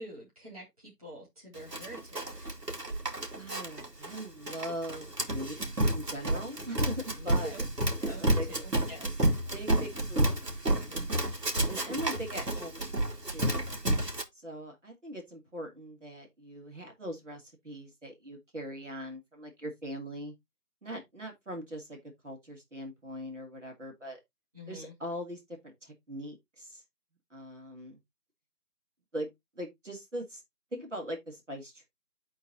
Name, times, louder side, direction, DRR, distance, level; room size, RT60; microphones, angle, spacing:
voice 1, 0.0-2.5 7.1-7.7 8.0-9.5 10.8-11.1 24.5-24.9, equal, 25° right, 2.3 m, -46 dB
Run, 1.7-14.2, right 1 dB, 80° right, 2.4 m, -30 dB
voice 2, 3.3-7.5 8.0-8.5 9.5-11.3 11.6-13.7 14.3-20.3 20.8-22.0 22.2-24.2 24.7-26.8 27.3-28.0 29.1-29.3 29.5-30.4 30.7-31.9, equal, 50° right, 2.8 m, -41 dB
12.0 x 4.0 x 2.8 m
figure-of-eight pair, 175°, 47 cm